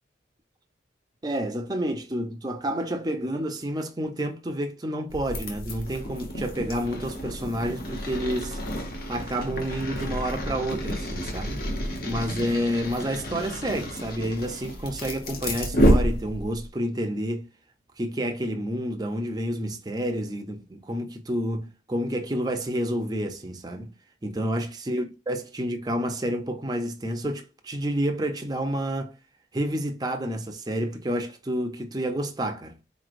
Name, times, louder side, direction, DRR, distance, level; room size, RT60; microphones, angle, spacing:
voice 1, 1.2-8.6 9.1-11.6 12.0-17.5 18.0-23.9 24.2-29.1 29.5-32.8, equal, 20° right, 0.5 m, -29 dB
sound 1, 5.1-16.7, equal, 50° left, 0.9 m, -29 dB
4.2 x 3.1 x 2.5 m
head